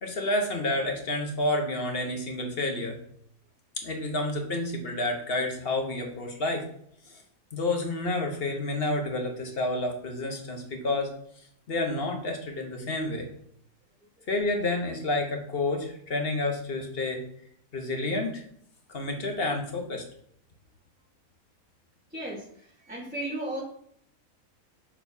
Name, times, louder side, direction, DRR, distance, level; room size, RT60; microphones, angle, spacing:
voice 1, 0.0-3.0 3.8-6.7 7.1-7.2 7.5-11.1 11.7-13.3 14.3-17.2 17.7-18.4 18.9-20.0, left 2 dB, 45° left, 3 dB, 1.3 m, -29 dB
voice 2, 22.1-23.6, right 1 dB, 5° right, -7 dB, 1.3 m, -35 dB
6.8 x 5.8 x 2.7 m, 0.66 s
omnidirectional pair, 1.5 m